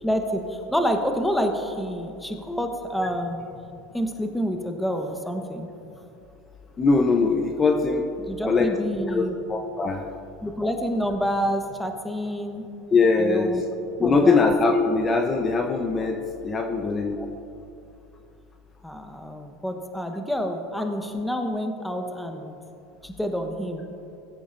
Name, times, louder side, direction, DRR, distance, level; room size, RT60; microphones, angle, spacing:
voice 1, 0.0-3.4 3.9-5.7 8.2-9.4 10.4-12.6 13.2-13.6 14.0-14.4 17.2-17.3 18.8-22.5 23.0-23.8, equal, 5° left, 5 dB, 1.1 m, -28 dB
voice 2, 6.8-8.1 8.5-8.7 9.1-10.0 12.9-13.6 14.0-17.2, left 4 dB, 25° left, 4 dB, 0.8 m, -21 dB
18.5 x 8.4 x 2.6 m, 2.7 s
hypercardioid pair, 95°, 0 cm